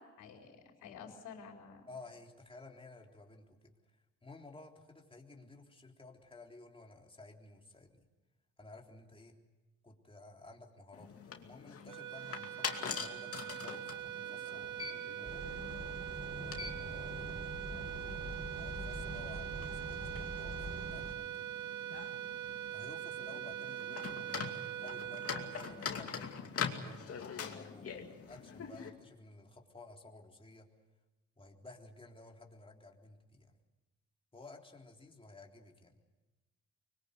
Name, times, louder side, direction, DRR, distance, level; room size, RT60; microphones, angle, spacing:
voice 1, 0.0-1.8 17.8-18.1, left 6 dB, 80° left, 1 dB, 4.3 m, -52 dB
voice 2, 1.9-8.1 8.6-9.4 9.8-15.4 16.3-17.6 18.6-21.5 22.7-30.7 31.4-33.6 34.3-36.0, left 2 dB, 20° left, 1 dB, 3.6 m, -55 dB
sound 1, 10.9-28.9, left 6 dB, 50° left, 2.6 m, -44 dB
sound 2, 11.9-26.4, right 12 dB, 85° right, 1.0 m, -43 dB
sound 3, 15.2-21.1, equal, 15° right, 6.8 m, -44 dB
24.0 x 22.5 x 8.2 m, 1.1 s
cardioid pair, 90°, 30 cm